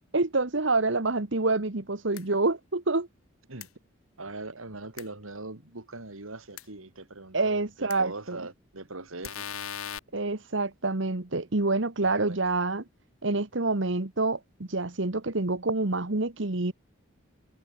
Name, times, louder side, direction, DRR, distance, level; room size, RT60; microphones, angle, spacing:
voice 1, 0.1-3.1 7.3-8.4 10.1-12.8 13.2-16.7, right 3 dB, 60° right, 1.4 m, -27 dB
sound 1, 2.1-2.2 3.6-3.7 5.0-5.1 6.6-6.7 7.9-8.0 9.2-10.0, left 9 dB, 90° left, 0.9 m, -37 dB
voice 2, 4.2-9.5 12.0-12.4, right 2 dB, 80° right, 3.1 m, -41 dB
head